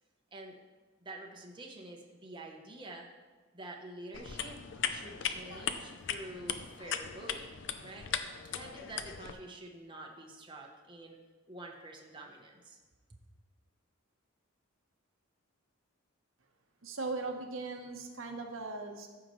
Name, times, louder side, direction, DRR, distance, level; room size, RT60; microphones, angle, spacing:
voice 1, 1.0-3.1 3.5-4.6 4.9-11.2 11.5-12.8 13.1-13.2, right 2 dB, 25° right, 0 dB, 0.8 m, -48 dB
sound 1, 4.1-9.3, left 8 dB, 60° left, 0.5 m, -38 dB
voice 2, 16.8-19.1, right 3 dB, 65° right, 3 dB, 1.0 m, -39 dB
14.0 x 5.7 x 3.1 m, 1.4 s
head